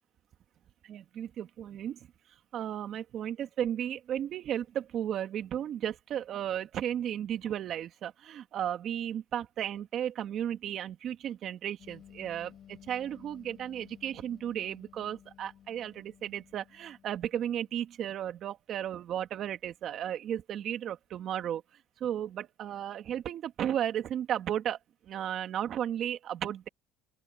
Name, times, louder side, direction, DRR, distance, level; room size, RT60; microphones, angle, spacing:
voice 1, 0.8-2.1 2.5-21.6 22.0-24.8 25.0-26.7, right 10 dB, 50° right, 2.3 m, -34 dB
sound 1, 11.8-18.2, left 10 dB, 45° left, 7.8 m, -56 dB
open air
cardioid pair, 115°, 0 cm